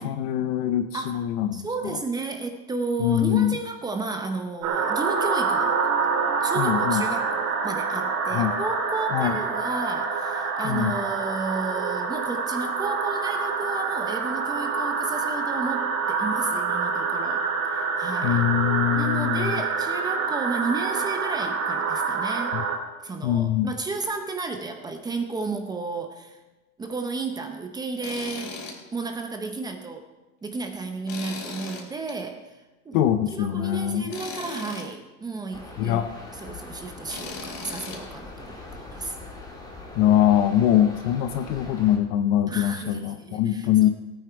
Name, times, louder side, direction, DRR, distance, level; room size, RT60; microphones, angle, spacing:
voice 1, 0.0-1.7 3.0-3.6 6.6-7.0 8.3-8.5 9.1-9.4 10.6-11.0 18.2-19.5 22.5-22.6 23.2-23.7 32.9-34.1 35.8-36.1 40.0-43.9, left 11 dB, 35° left, 9 dB, 0.6 m, -23 dB
voice 2, 1.5-5.8 6.4-18.4 18.9-22.6 23.0-26.4 26.8-28.6 28.9-30.1 30.4-33.0 33.3-36.1 36.3-39.2 42.5-43.9, right 3 dB, 10° right, 5 dB, 0.7 m, -33 dB
sound 1, 4.6-22.8, right 5 dB, 60° right, 2.7 m, -26 dB
Tools, 28.0-28.8 29.2-29.3 31.1-32.1 34.1-34.9 37.1-38.0, left 3 dB, 50° left, 3.4 m, -37 dB
sound 2, 35.5-42.0, left 2 dB, 10° left, 1.7 m, -42 dB
18.0 x 9.0 x 4.6 m, 1.1 s
supercardioid pair, 160°, 46 cm